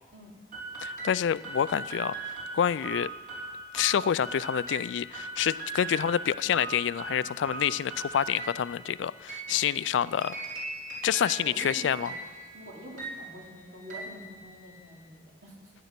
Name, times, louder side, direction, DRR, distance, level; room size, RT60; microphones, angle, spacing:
sound 1, 0.5-15.0, right 3 dB, 45° right, 3.4 m, -40 dB
voice 1, 0.8-3.1 3.7-10.4 11.0-12.1, left 9 dB, 90° left, 19 dB, 0.3 m, -28 dB
voice 2, 11.4-12.2 12.5-15.7, equal, 75° right, -2 dB, 3.0 m, -46 dB
12.5 x 10.0 x 5.9 m, 1.5 s
head